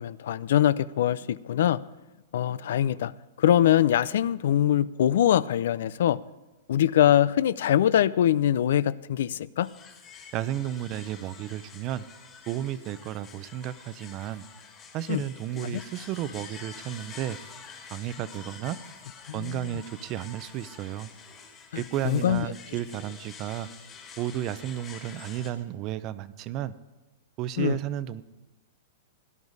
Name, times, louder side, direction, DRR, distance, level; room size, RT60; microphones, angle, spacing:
voice 1, 0.0-1.8 2.3-3.1 3.4-6.2 6.7-9.7 15.1-15.2 15.6-15.8 19.3-19.8 21.7-22.5 27.6-27.8, left 11 dB, 70° left, 20 dB, 0.4 m, -23 dB
sound 1, 9.6-25.5, left 6 dB, 25° left, 2.5 m, -47 dB
voice 2, 10.3-12.0 12.5-14.4 14.9-17.4 17.9-18.8 19.3-21.1 21.7-23.7 24.2-26.7 27.4-28.2, right 12 dB, 35° right, 16 dB, 0.6 m, -33 dB
18.0 x 11.0 x 4.1 m, 1.1 s
hypercardioid pair, 145°, 0 cm